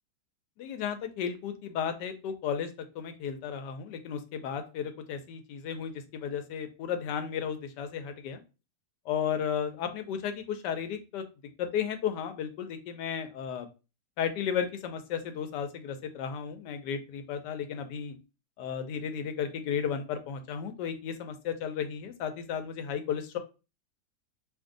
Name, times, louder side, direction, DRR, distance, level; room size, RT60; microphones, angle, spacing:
voice 1, 0.6-2.7 2.9-8.4 9.1-11.2 11.6-13.7 14.2-18.2 18.6-23.4, left 8 dB, 75° left, 8 dB, 1.2 m, -34 dB
2.6 x 2.6 x 3.6 m, 0.30 s
omnidirectional pair, 1.9 m